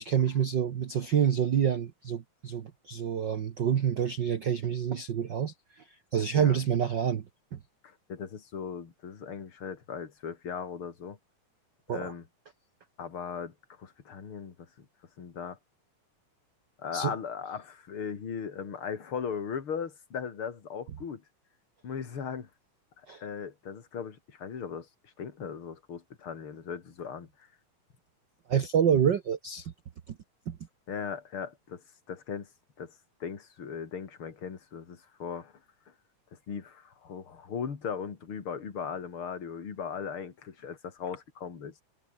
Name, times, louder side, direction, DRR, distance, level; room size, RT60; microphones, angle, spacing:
voice 1, 0.0-5.8 6.1-7.2 7.5-7.6 11.9-12.1 16.9-17.1 23.1-23.2 28.5-29.7 30.5-30.6, right 8 dB, 70° right, 1.0 m, -27 dB
voice 2, 7.8-11.2 11.9-12.2 13.0-14.5 15.2-15.6 16.8-21.2 21.8-22.5 23.2-24.9 25.2-27.3 30.9-31.8 32.1-32.5 32.8-32.9 33.2-35.5 36.3-41.7, left 6 dB, 40° left, 3.3 m, -38 dB
omnidirectional pair, 3.7 m